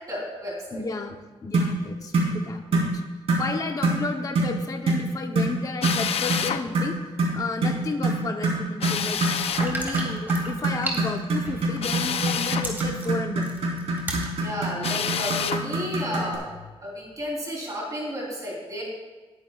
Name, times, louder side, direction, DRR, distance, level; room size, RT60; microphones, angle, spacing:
voice 1, 0.1-0.8 14.4-16.4 16.8-18.8, equal, 35° right, -3 dB, 3.5 m, -32 dB
voice 2, 0.7-2.9 3.4-7.0 7.3-9.2 9.6-13.5, left 3 dB, 35° left, 4 dB, 0.9 m, -32 dB
sound 1, 1.5-1.8 2.1-2.3 2.7-2.9 3.3-3.5 3.8-4.0 4.4-4.6 4.9-5.1 5.4-5.5 5.8-6.0 6.3-6.5 6.7-16.4, right 2 dB, 75° right, 3.5 m, -25 dB
Drill, 5.8-6.6 8.8-9.7 11.8-12.7 14.8-15.6, left 8 dB, 75° left, 0.5 m, -28 dB
sound 2, 9.5-11.9 12.3-14.3 14.9-15.0, right 1 dB, 20° right, 2.1 m, -33 dB
19.5 x 9.6 x 2.4 m, 1.3 s
wide cardioid pair, 160°, 11 cm